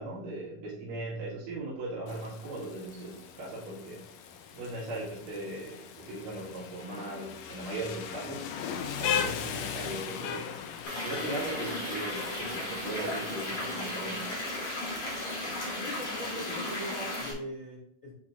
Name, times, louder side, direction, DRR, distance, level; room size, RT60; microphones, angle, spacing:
voice 1, 0.0-4.0 4.5-8.5 9.0-10.5 11.0-14.4, right 2 dB, 80° right, -9 dB, 3.4 m, -38 dB
Rain, 2.1-17.2, left 8 dB, 90° left, 1.5 m, -39 dB
sound 1, 10.8-17.3, left 1 dB, 45° left, 3.4 m, -35 dB
voice 2, 15.8-18.1, equal, 25° left, -6 dB, 1.8 m, -40 dB
9.7 x 4.3 x 2.5 m, 0.72 s
omnidirectional pair, 3.8 m